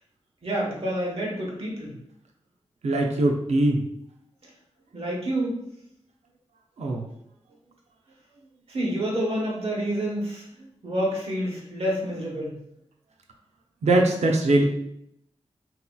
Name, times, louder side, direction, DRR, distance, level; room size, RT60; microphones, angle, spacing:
voice 1, 0.4-1.9 4.9-5.6 8.7-10.4 10.8-12.6, right 1 dB, 60° right, -3 dB, 1.2 m, -28 dB
voice 2, 2.8-3.8 6.8-7.1 13.8-14.6, right 2 dB, 85° right, 1 dB, 0.6 m, -21 dB
3.8 x 2.9 x 2.3 m, 0.76 s
cardioid pair, 65°, 11 cm